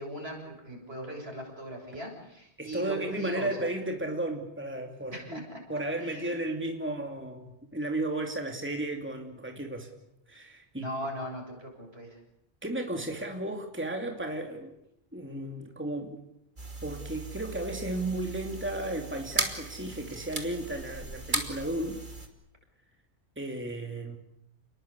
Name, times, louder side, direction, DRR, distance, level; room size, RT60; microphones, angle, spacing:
voice 1, 0.0-3.7 5.1-5.6 6.0-6.3 10.8-12.2, right 1 dB, 65° right, 2 dB, 7.6 m, -39 dB
voice 2, 2.6-5.4 5.7-9.9 10.3-10.9 12.6-14.7 15.1-16.2 16.8-22.0 23.4-24.2, right 1 dB, 10° right, 3 dB, 2.7 m, -34 dB
sound 1, 16.6-22.3, right 2 dB, 45° right, 3.0 m, -37 dB
29.5 x 21.0 x 8.4 m, 0.80 s
omnidirectional pair, 1.1 m